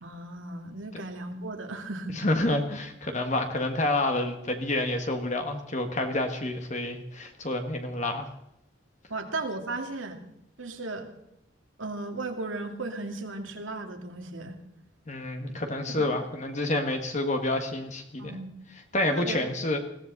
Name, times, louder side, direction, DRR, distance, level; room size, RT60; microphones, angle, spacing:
voice 1, 0.0-2.2 9.1-10.2 10.6-11.1 11.8-14.6 15.5-15.6 16.0-16.1 18.2-18.5 19.1-19.4, right 2 dB, 80° right, 4 dB, 2.3 m, -35 dB
voice 2, 2.2-8.3 15.1-18.4 18.9-19.8, left 2 dB, 35° left, 5 dB, 1.6 m, -28 dB
21.0 x 16.0 x 4.0 m, 0.80 s
head